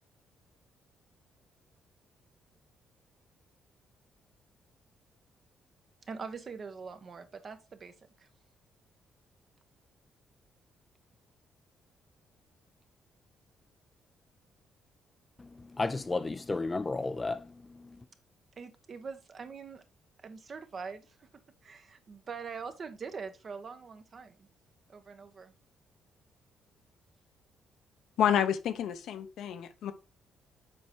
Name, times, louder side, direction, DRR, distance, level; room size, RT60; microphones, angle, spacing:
voice 1, 6.1-8.3 18.6-19.8 20.2-24.5 24.9-25.5, right 5 dB, 45° right, 1.1 m, -43 dB
voice 2, 15.4-18.1, left 3 dB, 25° left, 0.5 m, -34 dB
voice 3, 28.2-29.9, left 9 dB, 75° left, 0.9 m, -29 dB
7.5 x 4.5 x 4.5 m
cardioid pair, 90°, 0 cm